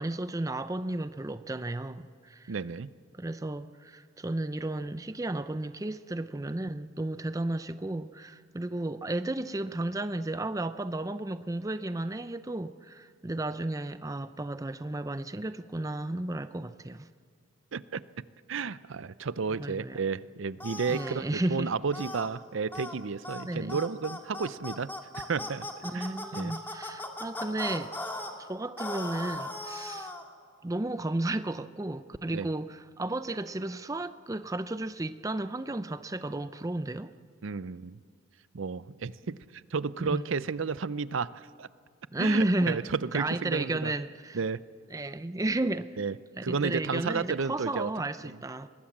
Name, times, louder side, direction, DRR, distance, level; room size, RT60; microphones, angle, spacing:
voice 1, 0.0-2.5 3.1-17.1 19.5-20.0 20.9-21.7 23.4-23.8 25.8-27.9 28.4-30.1 30.6-37.1 40.0-40.2 42.1-42.8 43.1-44.4 44.9-46.0 46.4-48.7, right 2 dB, 15° right, 0.5 m, -33 dB
voice 2, 2.5-2.9 17.7-18.0 18.5-21.2 21.5-25.7 25.9-26.5 32.3-32.5 37.4-38.0 38.5-41.7 42.2-43.9 44.3-44.6 46.0-46.2 46.4-47.9 48.2-48.3, right 5 dB, 70° right, 0.6 m, -32 dB
sound 1, 20.6-21.1 21.9-22.3 22.7-23.0 23.2-23.4 23.7-28.3 28.8-30.2, left 1 dB, 10° left, 1.9 m, -38 dB
24.5 x 20.5 x 7.3 m
head